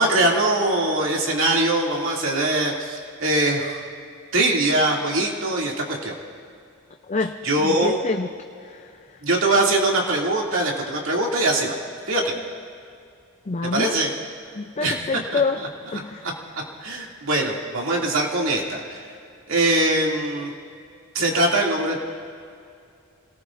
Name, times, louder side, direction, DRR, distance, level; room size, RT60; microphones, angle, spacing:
voice 1, 0.0-3.8 4.3-6.1 7.4-8.0 9.2-11.7 12.1-12.3 13.7-14.1 14.8-15.2 16.5-19.0 19.5-20.5 21.1-22.0, right 2 dB, 70° right, -1 dB, 2.5 m, -22 dB
voice 2, 7.1-8.3 8.6-9.2 13.5-14.0 14.5-15.6 15.9-16.3 21.2-21.3, left 4 dB, 35° left, 5 dB, 0.5 m, -27 dB
27.5 x 18.5 x 2.6 m, 2.4 s
head